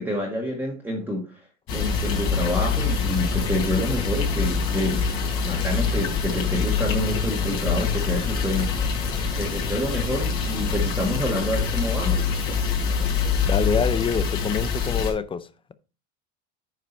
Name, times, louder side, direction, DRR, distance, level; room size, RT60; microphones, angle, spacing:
voice 1, 0.0-5.1 5.4-9.0 9.4-12.3, left 1 dB, 5° right, 1.9 m, -28 dB
sound 1, 1.7-15.1, left 5 dB, 45° left, 3.8 m, -25 dB
voice 2, 13.4-15.5, left 5 dB, 15° left, 0.6 m, -26 dB
9.7 x 5.2 x 4.2 m
supercardioid pair, 125°, 36 cm